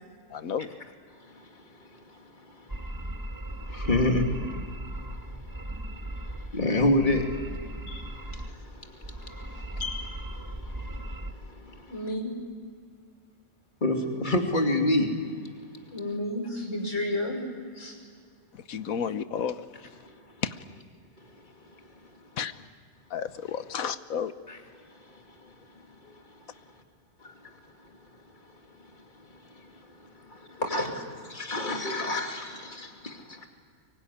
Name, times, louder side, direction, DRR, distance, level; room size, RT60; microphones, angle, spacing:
voice 1, 0.3-0.7 18.7-19.9 20.4-20.6 22.4-22.5 23.1-24.3, left 7 dB, 80° left, 12 dB, 1.4 m, -32 dB
sound 1, 2.7-6.5 6.8-8.7 9.0-11.3, right 1 dB, 15° right, 1.1 m, -37 dB
voice 2, 3.7-4.3 4.9-5.0 5.5-5.6 6.4-7.4 7.9-11.9 13.8-15.1 24.5-24.6 26.0-26.1 27.2-27.3 30.3-30.9 31.3-33.5, left 1 dB, 35° left, 3 dB, 2.9 m, -29 dB
voice 3, 11.9-12.3 15.9-17.5 17.7-17.9 30.6-30.9, left 1 dB, 60° left, 2 dB, 6.1 m, -31 dB
24.5 x 23.0 x 9.9 m, 2.1 s
omnidirectional pair, 1.4 m